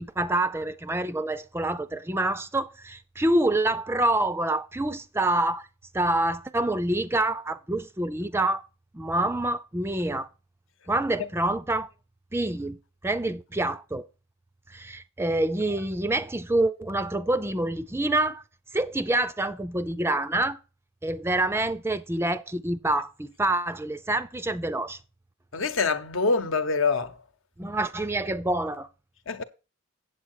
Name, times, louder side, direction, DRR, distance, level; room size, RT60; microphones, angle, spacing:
voice 1, 0.0-5.7 5.9-8.6 8.9-10.3 10.9-11.9 12.3-12.8 13.0-14.1 14.7-18.4 18.7-20.6 21.0-25.0 27.6-28.9, right 1 dB, 10° right, 0.5 m, -27 dB
voice 2, 25.5-27.2 29.3-29.4, left 4 dB, 65° left, 1.0 m, -25 dB
8.2 x 7.8 x 4.4 m
head